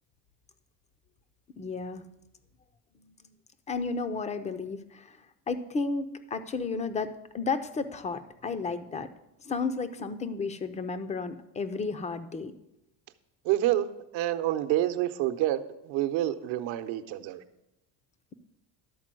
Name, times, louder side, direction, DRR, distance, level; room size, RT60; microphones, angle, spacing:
voice 1, 1.6-2.0 3.0-3.1 3.7-5.2 5.5-9.1 9.4-12.5, left 4 dB, 15° left, 11 dB, 0.3 m, -33 dB
voice 2, 13.4-13.9 14.1-17.4, right 13 dB, 75° right, 9 dB, 0.8 m, -28 dB
11.5 x 4.4 x 7.5 m, 0.89 s
cardioid pair, 140°, 47 cm